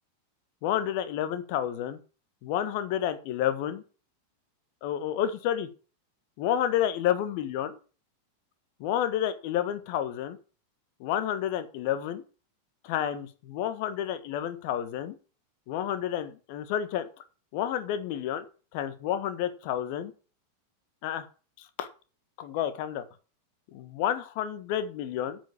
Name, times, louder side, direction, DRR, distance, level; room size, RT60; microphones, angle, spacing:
voice 1, 0.6-2.0 2.4-3.8 4.8-5.7 6.4-7.7 8.8-10.4 11.0-12.2 12.8-15.1 15.7-17.1 17.5-18.5 18.7-20.1 21.0-21.3 21.6-21.9 22.4-23.0 23.7-25.4, left 10 dB, 45° left, 11 dB, 1.5 m, -30 dB
9.3 x 6.3 x 6.9 m, 0.36 s
figure-of-eight pair, 90°, 0 cm